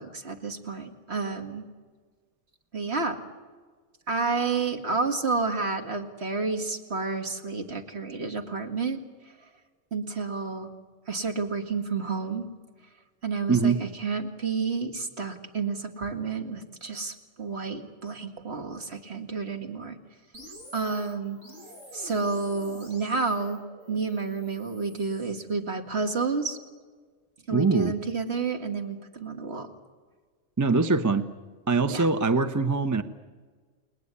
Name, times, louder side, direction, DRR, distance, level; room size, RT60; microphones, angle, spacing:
voice 1, 0.0-1.6 2.7-3.2 4.1-9.0 9.9-10.7 11.1-12.4 13.2-20.0 20.7-21.4 21.9-23.6 23.9-26.6 27.5-29.7 31.9-32.1, right 4 dB, 55° right, 5 dB, 2.4 m, -30 dB
sound 1, 20.3-25.4, equal, 80° right, 6.2 m, -48 dB
voice 2, 27.5-27.9 30.6-31.2 31.7-33.0, right 4 dB, 15° right, 10 dB, 0.8 m, -23 dB
29.5 x 20.0 x 9.9 m, 1.5 s
omnidirectional pair, 1.3 m